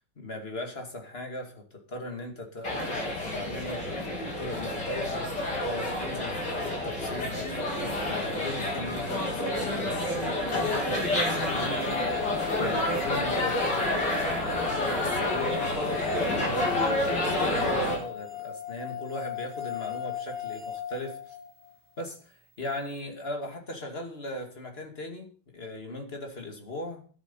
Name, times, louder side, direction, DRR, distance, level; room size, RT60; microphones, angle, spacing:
voice 1, 0.2-14.1 15.0-21.4 22.0-27.0, left 1 dB, 30° left, 4 dB, 2.6 m, -38 dB
sound 1, 2.6-18.0, left 1 dB, 70° left, 4.7 m, -29 dB
sound 2, 11.6-21.7, left 10 dB, 10° right, 2.9 m, -37 dB
12.5 x 11.0 x 5.5 m, 0.42 s
omnidirectional pair, 2.0 m